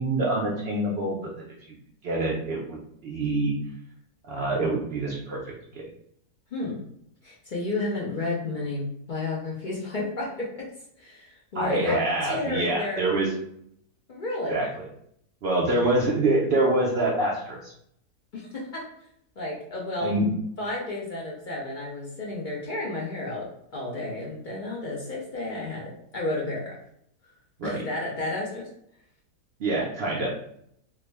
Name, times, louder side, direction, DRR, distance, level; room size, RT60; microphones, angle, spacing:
voice 1, 0.0-1.3 1.7-1.8 2.0-3.5 4.3-5.9 11.5-13.3 14.5-14.7 15.4-17.7 20.0-20.3 27.6-27.8 29.6-30.3, right 2 dB, 85° right, -3 dB, 0.5 m, -26 dB
voice 2, 7.2-10.6 11.0-13.0 14.1-14.7 18.3-18.6 19.4-20.1 20.6-26.8 27.6-28.7, left 2 dB, 65° left, -4 dB, 0.4 m, -32 dB
3.4 x 2.1 x 3.3 m, 0.71 s
omnidirectional pair, 1.7 m